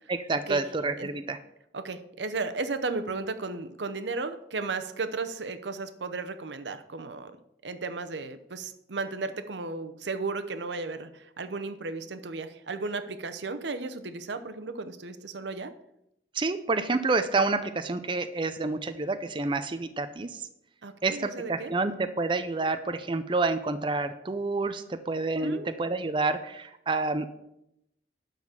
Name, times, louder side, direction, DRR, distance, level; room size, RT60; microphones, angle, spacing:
voice 1, 0.1-1.4 16.3-20.5 21.0-27.3, right 3 dB, 30° right, 9 dB, 0.5 m, -28 dB
voice 2, 1.7-7.3 7.6-15.7 20.8-21.7 25.4-25.7, right 3 dB, 85° right, 9 dB, 0.8 m, -34 dB
12.0 x 4.1 x 7.3 m, 0.82 s
head